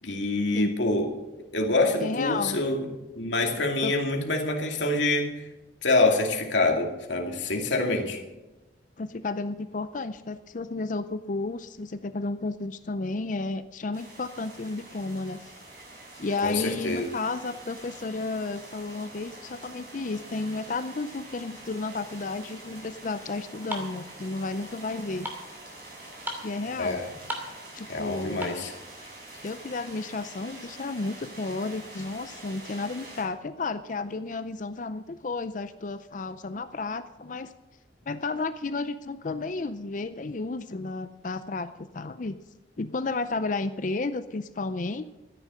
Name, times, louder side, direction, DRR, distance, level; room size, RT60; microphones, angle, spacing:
voice 1, 0.0-1.1 1.5-2.8 3.1-5.4 5.8-8.2 16.4-17.1 26.8-27.1 27.9-28.7, left 2 dB, 85° left, 2 dB, 2.4 m, -26 dB
voice 2, 2.0-2.6 3.8-3.9 9.0-15.4 16.1-25.3 26.4-27.0 27.7-28.5 29.3-37.5 38.1-42.4 42.8-45.0, left 3 dB, 45° left, 12 dB, 0.5 m, -32 dB
sound 1, 13.9-33.2, right 2 dB, 55° right, 5.5 m, -46 dB
sound 2, 23.5-28.8, equal, 10° right, 2.5 m, -39 dB
13.5 x 10.5 x 6.3 m, 1.1 s
head